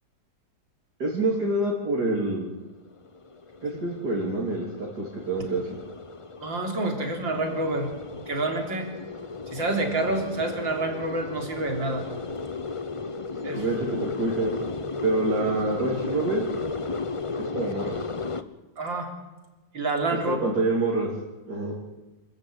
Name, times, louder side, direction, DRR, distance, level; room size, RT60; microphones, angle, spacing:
voice 1, 1.0-2.5 3.6-5.8 13.4-14.6 15.0-16.5 17.4-18.0 20.3-21.1 21.5-21.7, right 2 dB, 60° right, -4 dB, 3.9 m, -27 dB
sound 1, 2.9-18.4, left 4 dB, 35° left, 0.5 m, -35 dB
voice 2, 6.4-7.9 8.3-8.9 9.5-12.1 13.4-13.6 18.8-19.1 19.7-20.4, right 2 dB, 90° right, 3 dB, 4.1 m, -28 dB
27.0 x 14.0 x 8.9 m, 1.1 s
omnidirectional pair, 2.0 m